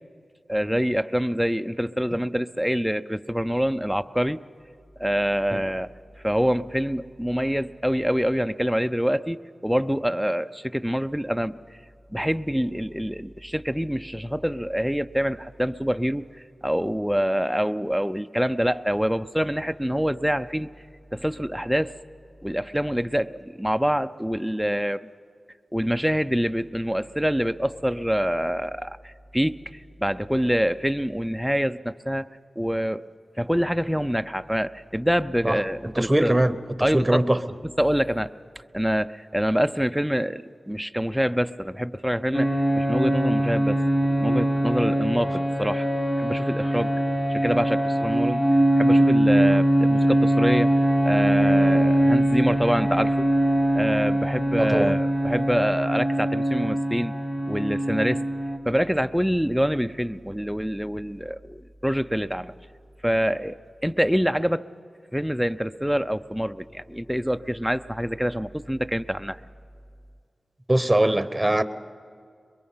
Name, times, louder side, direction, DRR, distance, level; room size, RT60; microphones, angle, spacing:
voice 1, 0.5-4.4 5.0-5.9 6.2-11.6 12.1-16.3 16.6-20.7 21.1-22.0 22.4-25.1 25.7-29.6 30.0-32.3 32.6-33.1 33.4-36.3 36.8-37.2 37.8-38.3 38.7-43.8 44.2-45.9 46.2-46.9 47.3-48.5 48.8-50.7 51.1-53.3 53.7-57.1 57.5-58.2 58.7-62.5 63.0-63.6 63.8-64.6 65.1-69.4, equal, ahead, 9 dB, 0.5 m, -25 dB
voice 2, 35.9-37.4 54.6-55.0 70.7-71.6, right 1 dB, 20° right, 12 dB, 0.9 m, -22 dB
sound 1, 42.3-58.6, right 1 dB, 20° left, 1.6 m, -22 dB
22.5 x 22.5 x 5.6 m, 2.2 s
cardioid pair, 40°, 0 cm